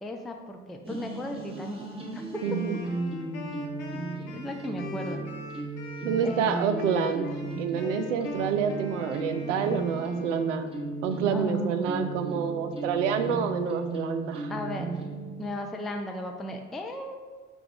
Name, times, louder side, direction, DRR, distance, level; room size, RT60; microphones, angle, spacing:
voice 1, 0.0-1.8 2.1-2.4 4.3-5.2 6.2-6.5 11.3-12.2 14.5-15.0 15.4-17.2, left 1 dB, ahead, 3 dB, 0.3 m, -35 dB
sound 1, 0.8-15.5, right 3 dB, 15° right, 1.0 m, -36 dB
Wind instrument woodwind instrument, 2.3-10.7, left 5 dB, 60° left, 0.9 m, -43 dB
voice 2, 2.4-2.8 6.0-7.3 7.6-10.7 11.0-14.5, right 7 dB, 80° right, 9 dB, 0.5 m, -28 dB
5.0 x 2.3 x 4.5 m, 1.4 s
hypercardioid pair, 60°, 36 cm